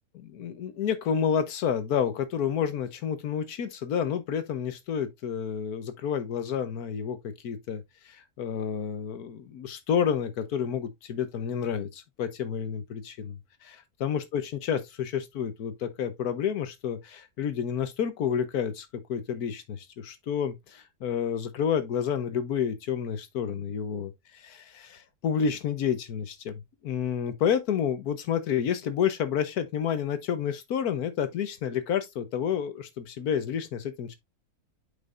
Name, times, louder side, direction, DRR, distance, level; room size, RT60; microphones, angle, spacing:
voice 1, 0.3-34.2, left 8 dB, 80° left, 1.5 m, -30 dB
8.0 x 5.2 x 2.4 m
omnidirectional pair, 1.6 m